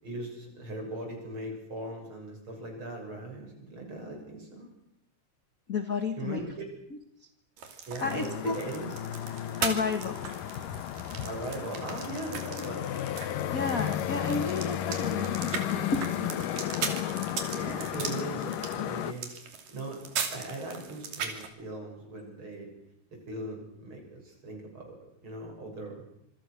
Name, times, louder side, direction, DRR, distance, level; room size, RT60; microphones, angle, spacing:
voice 1, 0.0-4.7 6.2-6.6 7.9-8.9 11.2-12.9 13.4-14.1 17.5-19.4 19.7-22.7 23.3-25.0 25.2-26.0, right 2 dB, 35° right, 2 dB, 7.8 m, -39 dB
voice 2, 5.7-6.4 6.9-7.0 8.0-8.6 9.6-10.3 13.5-16.5, left 4 dB, 45° left, 8 dB, 1.2 m, -32 dB
sound 1, 7.6-21.5, right 6 dB, 90° right, 4.5 m, -39 dB
sound 2, 8.0-19.1, left 11 dB, 85° left, 2.7 m, -33 dB
26.5 x 24.0 x 6.6 m, 0.79 s
omnidirectional pair, 3.7 m